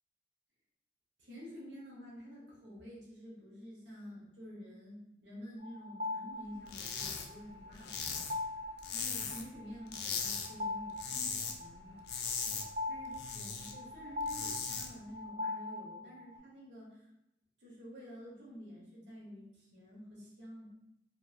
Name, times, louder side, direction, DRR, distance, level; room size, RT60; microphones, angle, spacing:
voice 1, 1.2-8.5 8.9-12.1 12.8-17.1 17.6-20.7, equal, 85° right, -5 dB, 0.9 m, -50 dB
sound 1, 5.6-16.4, left 2 dB, 40° right, 0.3 m, -42 dB
sound 2, 6.7-7.3 7.5-9.5 9.9-10.5 10.8-11.6 11.9-13.7 14.1-14.9, left 6 dB, 65° left, 0.4 m, -38 dB
2.9 x 2.4 x 2.4 m, 0.87 s
head